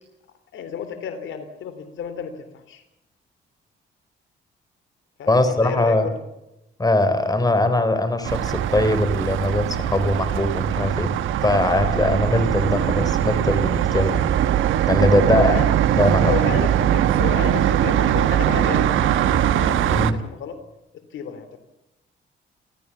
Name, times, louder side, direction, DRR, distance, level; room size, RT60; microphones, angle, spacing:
voice 1, 0.5-2.8 5.2-6.1 15.3-15.7 16.2-20.6 20.9-21.6, left 7 dB, 75° left, 10 dB, 3.3 m, -32 dB
voice 2, 5.3-6.1 6.8-11.1 11.4-14.2 14.9-15.6 15.9-16.3 19.9-20.1, left 1 dB, 20° left, 10 dB, 3.6 m, -21 dB
sound 1, 8.2-20.1, right 10 dB, 80° right, 1.3 m, -21 dB
29.5 x 14.0 x 7.2 m, 0.91 s
cardioid pair, 90°, 20 cm